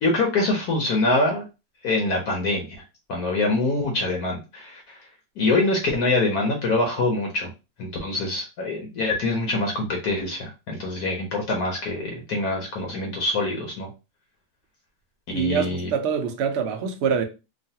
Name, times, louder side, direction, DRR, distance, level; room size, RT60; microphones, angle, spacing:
voice 1, 0.0-1.5 1.8-2.7 3.1-5.1 5.4-7.5 7.8-13.9 15.3-15.9, left 2 dB, 65° left, 1.1 m, -24 dB
voice 2, 15.3-17.2, right 7 dB, 80° right, 0.6 m, -25 dB
3.1 x 2.3 x 2.7 m
omnidirectional pair, 1.9 m